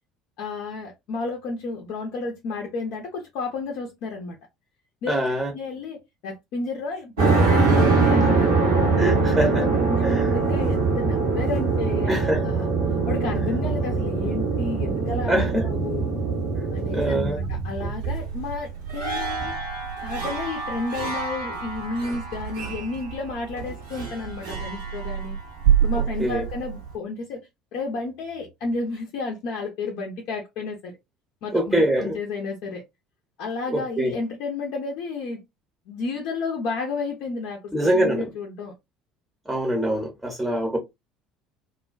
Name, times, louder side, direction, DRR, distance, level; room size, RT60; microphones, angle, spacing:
voice 1, 0.4-4.4 5.0-5.2 5.5-8.7 9.5-12.7 13.1-15.4 15.6-16.1 16.7-19.5 20.0-25.4 25.8-30.9 31.4-32.8 33.4-35.4 35.9-38.7, left 3 dB, 55° left, 0.5 m, -32 dB
voice 2, 5.1-5.5 8.2-8.4 9.0-9.7 10.0-10.3 12.1-12.4 15.3-15.6 16.9-17.4 26.2-26.5 31.5-32.2 33.7-34.1 37.7-38.3 39.5-40.8, right 1 dB, 10° right, 0.7 m, -24 dB
sound 1, 7.2-26.9, right 4 dB, 70° right, 0.8 m, -24 dB
2.4 x 2.1 x 2.3 m
figure-of-eight pair, 60°, 0 cm